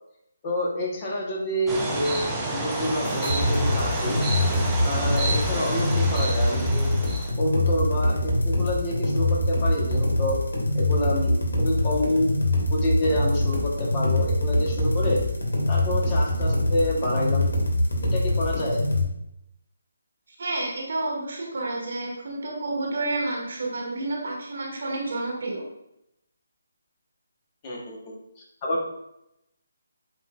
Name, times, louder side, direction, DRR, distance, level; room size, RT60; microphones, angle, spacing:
voice 1, 0.4-4.2 4.8-6.9 7.4-10.4 10.7-12.3 12.7-15.2 15.7-17.5 18.1-18.8 27.6-28.1 28.6-28.8, left 1 dB, 30° left, -3 dB, 1.0 m, -27 dB
sound 1, 1.7-7.3, right 2 dB, 5° right, 0.6 m, -29 dB
sound 2, 3.0-19.0, left 1 dB, 70° left, 1.3 m, -24 dB
voice 2, 20.4-25.7, right 2 dB, 60° right, -2 dB, 1.5 m, -30 dB
7.2 x 2.6 x 2.3 m, 0.82 s
figure-of-eight pair, 150°, 0 cm